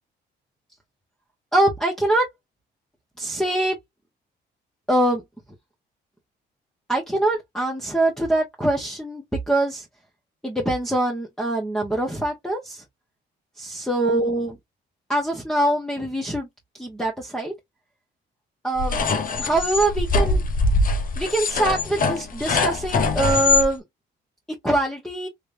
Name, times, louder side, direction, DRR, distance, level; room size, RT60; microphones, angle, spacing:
voice 1, 1.5-2.3 3.2-3.8 4.9-5.2 6.9-9.8 10.4-12.8 13.6-14.6 15.1-16.5 16.7-17.5 18.6-19.0 19.4-20.4 21.2-23.8 24.6-25.3, right 1 dB, ahead, 1.3 m, -23 dB
sound 1, 18.8-23.7, left 3 dB, 45° left, 0.9 m, -22 dB
3.4 x 3.2 x 2.7 m
cardioid pair, 90°, 20 cm